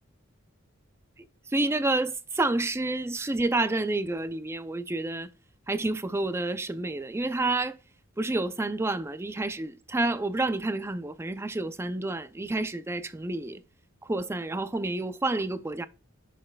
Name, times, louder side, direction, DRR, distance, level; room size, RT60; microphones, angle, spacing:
voice 1, 1.5-5.3 5.7-7.8 8.2-13.6 14.1-15.9, right 2 dB, 10° right, 0.4 m, -29 dB
7.5 x 6.4 x 2.3 m
head